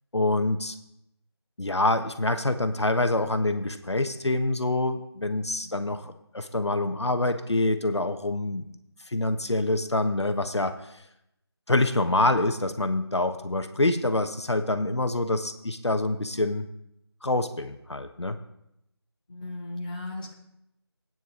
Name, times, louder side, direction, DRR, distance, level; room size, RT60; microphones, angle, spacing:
voice 1, 0.1-0.7 1.6-8.7 9.1-11.0 11.7-16.6 17.2-18.4, left 2 dB, 85° left, 7 dB, 1.3 m, -26 dB
voice 2, 5.6-6.0 19.3-20.3, left 2 dB, 20° left, -3 dB, 1.5 m, -37 dB
15.0 x 9.3 x 3.9 m, 0.81 s
figure-of-eight pair, 175°, 14 cm